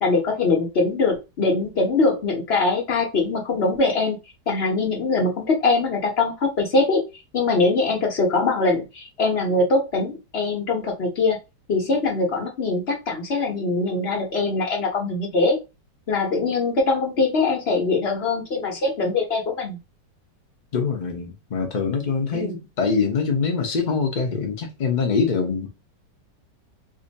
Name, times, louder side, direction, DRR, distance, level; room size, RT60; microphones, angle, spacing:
voice 1, 0.0-4.2 4.5-7.0 7.3-11.4 11.7-15.6 16.1-19.8 22.3-22.6, left 3 dB, 45° left, 1.0 m, -22 dB
voice 2, 20.7-25.7, left 5 dB, 60° left, 0.4 m, -24 dB
2.7 x 2.6 x 4.0 m
omnidirectional pair, 1.9 m